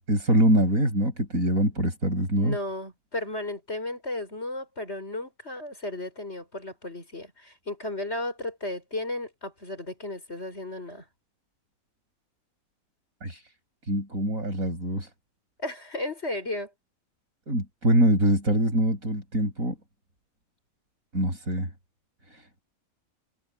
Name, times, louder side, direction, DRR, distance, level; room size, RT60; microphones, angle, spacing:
voice 1, 0.1-2.6 13.2-13.4 13.9-15.1 17.5-19.8 21.1-21.7 22.3-22.4, right 1 dB, 70° right, 7.9 m, -24 dB
voice 2, 2.4-11.0 15.6-16.7, left 2 dB, 50° left, 6.5 m, -34 dB
omnidirectional pair, 1.5 m